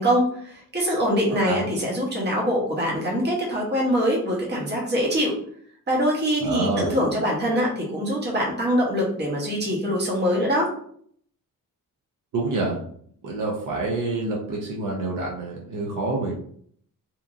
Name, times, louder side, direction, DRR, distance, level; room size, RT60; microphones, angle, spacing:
voice 1, 0.0-5.3 5.9-10.7, equal, 30° right, -2 dB, 0.8 m, -23 dB
voice 2, 6.4-7.0 12.3-12.8 13.2-16.3, right 2 dB, 65° right, -2 dB, 0.7 m, -27 dB
2.9 x 2.5 x 2.4 m, 0.62 s
wide cardioid pair, 165°, 34 cm